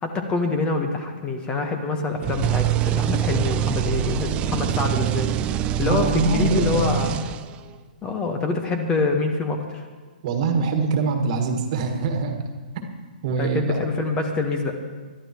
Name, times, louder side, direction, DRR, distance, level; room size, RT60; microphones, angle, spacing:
voice 1, 0.0-5.3 5.8-7.2 8.0-9.8 13.4-14.8, left 3 dB, 20° left, 5 dB, 1.2 m, -25 dB
sound 1, 2.2-7.7, right 11 dB, 20° right, 0.4 m, -24 dB
voice 2, 5.9-6.9 10.2-12.4 13.2-13.8, right 4 dB, 45° right, 4 dB, 1.8 m, -23 dB
21.5 x 12.5 x 3.0 m, 1.4 s
figure-of-eight pair, 130°, 5 cm